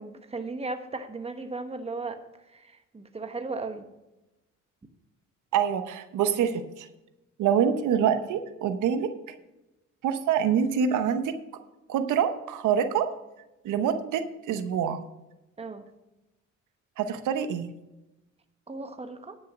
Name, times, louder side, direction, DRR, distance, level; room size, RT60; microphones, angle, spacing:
voice 1, 0.0-2.2 2.5-3.8 15.6-15.8 18.7-19.4, right 3 dB, 20° right, 7 dB, 1.1 m, -36 dB
voice 2, 5.5-6.9 7.4-9.1 10.0-11.3 11.9-13.1 13.6-15.0 17.0-17.7, right 8 dB, 80° right, 9 dB, 0.9 m, -25 dB
10.0 x 6.5 x 6.1 m, 0.97 s
cardioid pair, 90°, 30 cm